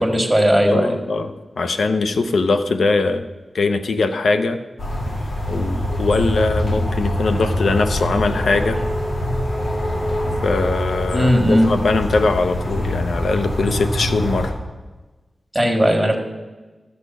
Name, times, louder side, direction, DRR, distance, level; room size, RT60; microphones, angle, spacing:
voice 1, 0.0-1.0 11.1-11.7 15.5-16.1, equal, 5° right, 2 dB, 2.0 m, -17 dB
voice 2, 0.6-3.2 3.5-4.6 5.5-8.8 10.4-14.5, left 3 dB, 85° left, 9 dB, 0.7 m, -21 dB
sound 1, 4.8-14.5, left 1 dB, 70° left, 2.3 m, -24 dB
13.5 x 6.6 x 5.4 m, 1.2 s
wide cardioid pair, 75°, 0 cm